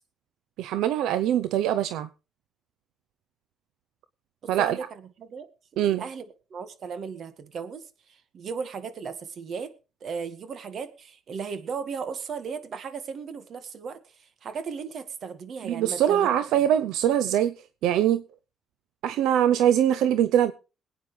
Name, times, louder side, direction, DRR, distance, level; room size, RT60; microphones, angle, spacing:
voice 1, 0.6-2.1 4.5-4.8 5.8-6.0 15.7-17.5 17.8-18.2 19.0-20.5, right 10 dB, 90° right, 0.6 m, -23 dB
voice 2, 4.4-4.8 5.2-5.5 5.8-6.2 6.5-9.7 10.0-14.0 14.4-16.3 16.6-16.7, right 6 dB, 55° right, 1.8 m, -36 dB
21.0 x 9.1 x 3.3 m
cardioid pair, 95°, 0 cm